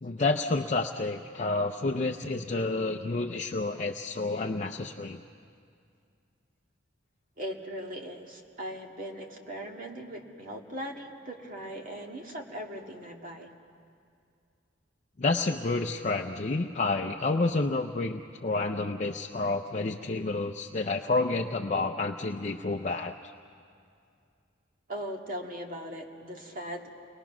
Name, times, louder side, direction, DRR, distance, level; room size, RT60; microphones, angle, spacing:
voice 1, 0.0-5.2 15.2-23.1, left 3 dB, 40° left, 3 dB, 0.6 m, -29 dB
voice 2, 7.4-13.5 24.9-26.9, equal, 45° right, 1 dB, 2.0 m, -39 dB
29.5 x 21.0 x 6.0 m, 2.4 s
head